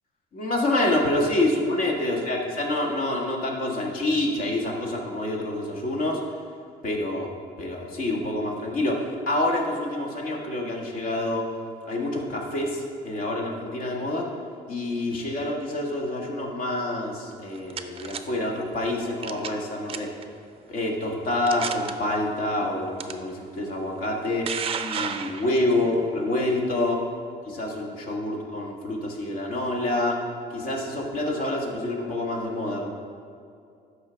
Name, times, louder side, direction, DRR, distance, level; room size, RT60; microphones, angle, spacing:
voice 1, 0.3-6.2 6.8-7.3 7.6-9.0 9.3-11.4 11.8-14.2 14.7-20.1 20.7-24.4 24.8-27.0 27.4-30.2 30.5-32.9, left 1 dB, 55° left, 0 dB, 1.6 m, -27 dB
sound 1, 17.3-18.2 19.2-19.6 19.9-20.2 20.9-21.0 21.5-21.9 23.0-23.1 24.0-25.8, right 7 dB, 35° right, 0.5 m, -32 dB
12.0 x 4.9 x 3.4 m, 2.4 s
cardioid pair, 110°, 17 cm